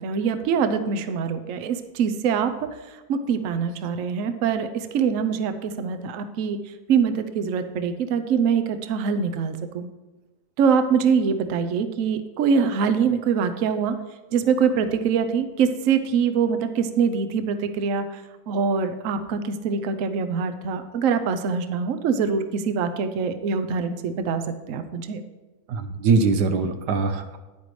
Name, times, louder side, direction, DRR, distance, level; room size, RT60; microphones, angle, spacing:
voice 1, 0.0-2.7 3.1-6.6 6.9-9.9 10.6-14.0 14.3-18.2 18.5-24.4 24.7-25.2, right 6 dB, 60° right, 9 dB, 1.0 m, -24 dB
voice 2, 25.7-27.4, right 4 dB, 90° right, 7 dB, 1.5 m, -22 dB
10.0 x 9.2 x 3.2 m, 1.2 s
omnidirectional pair, 1.7 m